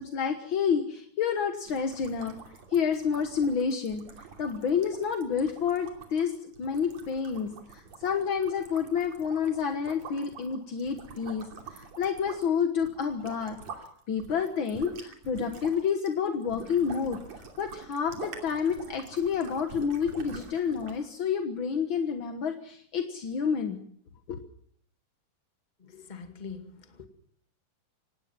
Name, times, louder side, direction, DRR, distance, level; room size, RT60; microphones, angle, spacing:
voice 1, 0.0-2.4 2.7-4.0 4.4-13.6 14.1-23.8 24.3-24.4, left 6 dB, 55° left, 6 dB, 1.5 m, -29 dB
sound 1, 1.7-13.9 14.2-21.1, right 5 dB, 50° right, 3.8 m, -46 dB
voice 2, 25.8-27.1, left 5 dB, 20° left, 6 dB, 1.5 m, -43 dB
25.5 x 18.0 x 5.9 m, 0.62 s
omnidirectional pair, 3.9 m